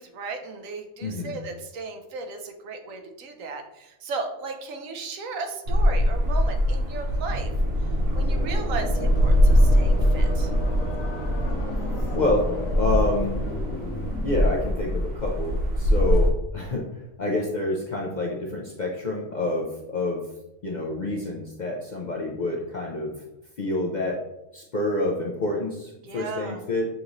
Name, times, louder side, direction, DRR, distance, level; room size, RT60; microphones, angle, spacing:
voice 1, 0.0-7.5 8.1-10.5 26.0-26.6, right 4 dB, 80° right, 5 dB, 1.1 m, -35 dB
voice 2, 1.0-1.3 12.1-12.5 12.8-13.4 14.2-16.8 17.2-20.2 20.6-23.1 23.6-24.2 24.5-26.9, left 2 dB, 55° left, -2 dB, 0.5 m, -27 dB
sound 1, 5.7-16.3, equal, 50° right, 0.9 m, -22 dB
sound 2, 8.0-14.5, left 3 dB, 80° left, 1.0 m, -37 dB
6.6 x 2.9 x 2.6 m, 0.90 s
omnidirectional pair, 1.4 m